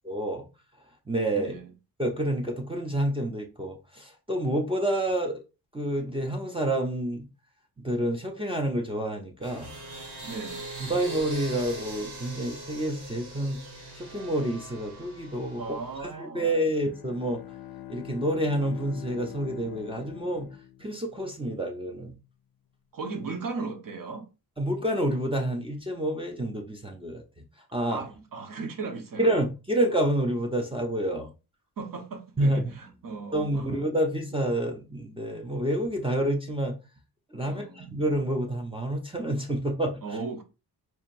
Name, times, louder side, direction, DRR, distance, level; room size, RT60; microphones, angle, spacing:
voice 1, 0.0-0.4 1.1-1.5 2.0-5.4 5.7-7.3 7.8-9.7 10.9-13.6 14.1-15.6 16.0-17.4 17.9-20.5 20.8-22.1 24.6-27.2 27.7-28.0 29.2-31.3 32.4-32.7 33.3-36.8 37.3-40.0, right 1 dB, 15° right, 0.6 m, -28 dB
voice 2, 1.4-1.7 10.2-10.6 15.6-16.5 22.9-24.2 27.9-29.3 31.8-33.8 37.4-37.9 40.0-40.4, right 4 dB, 55° right, 1.0 m, -37 dB
sound 1, 9.4-16.0, right 1 dB, 75° right, 1.6 m, -40 dB
Bowed string instrument, 16.7-21.4, left 12 dB, 65° left, 0.5 m, -44 dB
4.5 x 2.9 x 2.5 m
wide cardioid pair, 120°, 39 cm